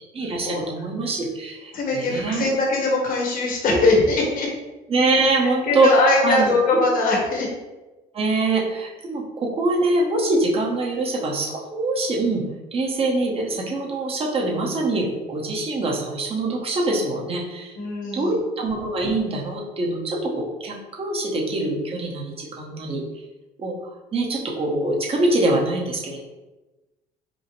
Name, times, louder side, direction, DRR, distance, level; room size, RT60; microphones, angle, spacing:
voice 1, 0.1-2.5 3.7-3.9 4.9-5.9 6.2-6.8 8.1-12.4 12.7-17.7 18.1-23.0 23.6-26.2, right 2 dB, 35° right, -1 dB, 0.9 m, -24 dB
voice 2, 1.7-4.5 5.4-7.5 17.8-18.4, left 2 dB, 55° left, -1 dB, 1.2 m, -21 dB
5.3 x 2.1 x 3.1 m, 1.1 s
cardioid pair, 110°, 17 cm